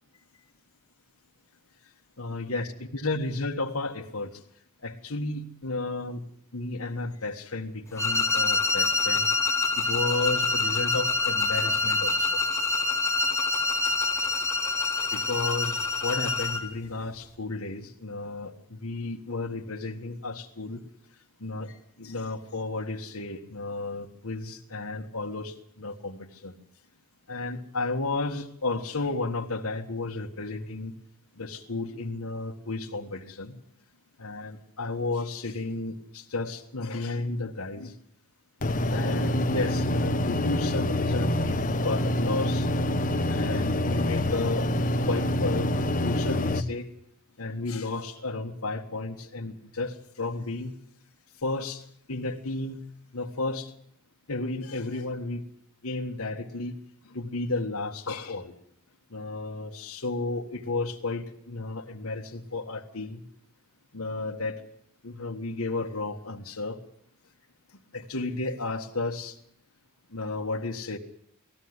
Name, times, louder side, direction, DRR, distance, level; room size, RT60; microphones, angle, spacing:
voice 1, 2.2-4.4 4.8-6.2 6.5-9.3 9.8-12.4 15.1-20.8 21.4-26.5 27.3-30.9 31.4-33.5 34.2-37.9 38.9-42.7 43.2-44.7 45.1-45.7 46.0-46.9 47.4-50.7 51.4-52.8 53.1-53.7 54.3-55.4 55.8-56.8 57.1-58.5 59.1-63.2 63.9-64.6 65.0-66.8 67.9-69.4 70.1-71.0, left 3 dB, 70° left, 0 dB, 1.7 m, -33 dB
sound 1, 8.0-16.7, left 3 dB, 15° left, 1.7 m, -26 dB
sound 2, 38.6-46.6, left 1 dB, 40° left, 1.1 m, -26 dB
19.5 x 16.0 x 9.7 m, 0.67 s
head